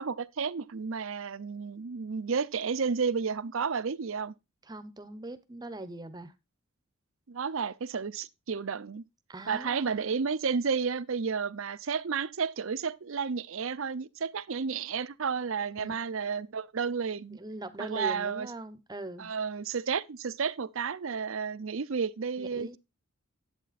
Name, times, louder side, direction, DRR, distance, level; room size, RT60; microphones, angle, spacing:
voice 1, 0.0-4.3 7.3-9.0 9.5-17.4 17.8-18.5 19.2-22.8, right 5 dB, 65° right, 0.6 m, -32 dB
voice 2, 4.6-6.3 9.3-10.1 15.8-15.9 17.4-19.3 22.4-22.8, right 2 dB, 20° right, 0.8 m, -41 dB
11.0 x 8.1 x 4.1 m
head